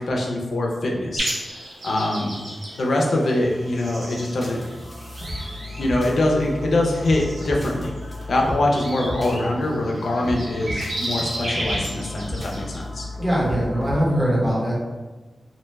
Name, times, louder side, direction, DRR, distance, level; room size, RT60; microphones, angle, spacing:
voice 1, 0.0-1.3 1.8-2.3 2.7-4.6 5.8-7.9 8.3-13.1, left 1 dB, 70° left, -1 dB, 0.5 m, -23 dB
sound 1, 1.2-12.8, right 1 dB, 85° right, 0.7 m, -34 dB
sound 2, 3.4-14.0, left 1 dB, 15° left, 0.7 m, -34 dB
voice 2, 13.2-14.7, equal, 15° right, -7 dB, 0.9 m, -21 dB
2.6 x 2.2 x 3.1 m, 1.2 s
wide cardioid pair, 170°, 0 cm